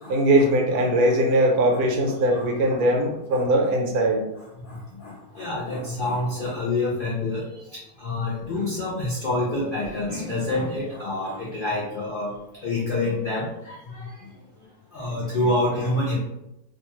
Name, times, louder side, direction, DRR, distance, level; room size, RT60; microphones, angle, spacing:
voice 1, 0.1-4.2, right 1 dB, 75° right, 1 dB, 1.0 m, -20 dB
voice 2, 2.3-2.8 3.3-3.5 4.6-7.4 8.0-12.3 12.6-14.1 14.9-16.2, left 2 dB, 70° left, -6 dB, 0.5 m, -27 dB
2.6 x 2.2 x 2.9 m, 0.88 s
omnidirectional pair, 1.7 m